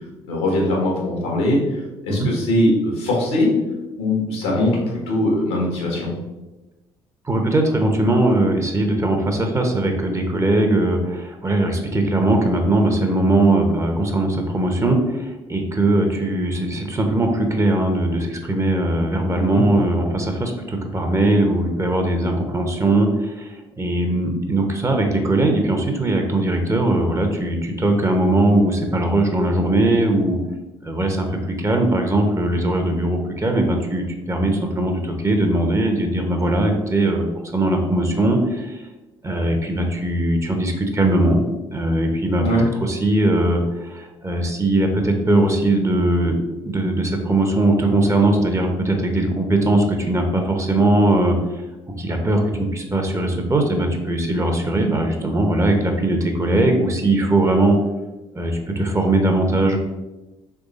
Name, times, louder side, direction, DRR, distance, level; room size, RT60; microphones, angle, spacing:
voice 1, 0.3-1.6 2.0-3.5 4.0-6.1 19.3-19.6 42.4-42.7, left 1 dB, 80° left, -2 dB, 1.3 m, -21 dB
voice 2, 7.2-30.4 30.8-37.3 37.5-38.8 39.2-41.4 41.7-42.4 42.8-46.4 46.7-51.6 52.0-57.8 58.3-59.8, right 1 dB, 20° right, 4 dB, 0.9 m, -20 dB
3.6 x 3.2 x 4.1 m, 1.1 s
hypercardioid pair, 55°, 13 cm